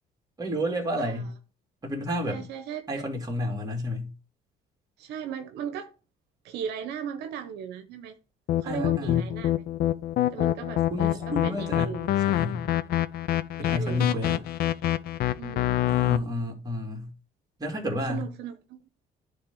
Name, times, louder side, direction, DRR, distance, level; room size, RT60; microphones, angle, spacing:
voice 1, 0.4-1.3 1.8-2.5 2.9-4.1 8.6-9.3 10.9-11.9 12.3-12.7 13.6-14.4 15.9-17.1 17.6-18.3, left 1 dB, 20° right, 2.7 m, -30 dB
voice 2, 1.0-1.3 2.3-2.9 5.0-5.9 6.4-8.2 8.6-9.6 10.3-12.1 13.6-14.4 15.4-15.8 18.1-18.8, right 8 dB, 85° right, 0.9 m, -37 dB
sound 1, 8.5-16.2, left 13 dB, 65° left, 0.5 m, -26 dB
10.0 x 3.5 x 5.4 m
cardioid pair, 110°, 17 cm